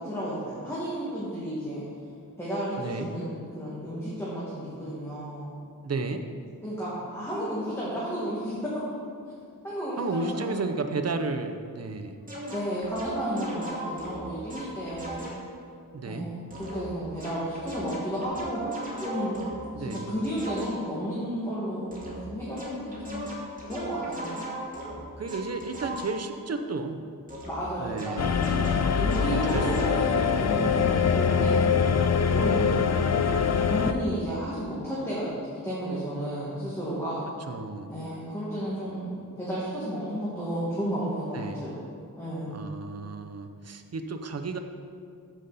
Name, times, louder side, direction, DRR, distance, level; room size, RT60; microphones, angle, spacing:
voice 1, 0.0-1.8 2.4-5.5 6.6-8.8 9.6-10.6 12.5-15.3 16.0-19.5 19.8-23.3 23.6-24.3 27.4-31.6 32.3-33.0 33.7-37.2 37.9-41.7 42.2-42.5, equal, 5° left, -9 dB, 1.9 m, -33 dB
voice 2, 2.8-3.1 5.8-6.3 10.0-12.2 15.9-16.3 19.7-20.1 25.2-27.1 27.8-28.4 29.4-29.9 30.2-30.5 32.5-32.8 37.5-37.9 41.3-41.6 42.5-44.6, right 3 dB, 45° right, 6 dB, 0.6 m, -33 dB
sound 1, 12.3-15.5 16.5-21.0 21.9-22.3 22.6-26.4 27.3-30.1, right 1 dB, 25° right, 2.0 m, -37 dB
sound 2, 28.2-33.9, left 6 dB, 50° left, 0.5 m, -23 dB
14.5 x 5.4 x 4.1 m, 2.3 s
wide cardioid pair, 135°, 34 cm